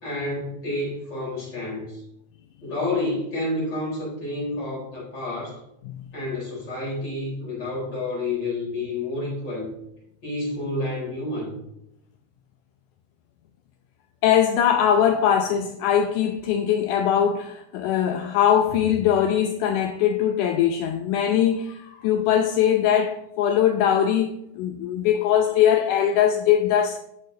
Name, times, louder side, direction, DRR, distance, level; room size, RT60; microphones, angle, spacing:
voice 1, 0.0-2.0 2.6-5.6 6.1-9.7 10.2-11.5, left 2 dB, 30° left, 4.3 m, -29 dB
voice 2, 14.2-27.0, left 9 dB, 80° left, 1.9 m, -21 dB
14.0 x 6.6 x 2.7 m
omnidirectional pair, 4.0 m